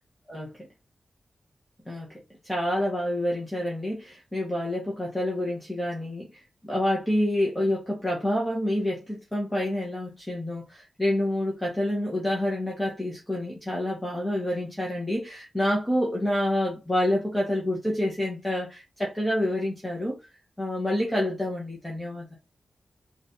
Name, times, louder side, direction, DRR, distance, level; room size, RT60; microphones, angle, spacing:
voice 1, 2.4-20.2 20.6-22.4, left 1 dB, 5° left, 1.2 m, -28 dB
4.0 x 3.3 x 3.9 m
wide cardioid pair, 160°, 0 cm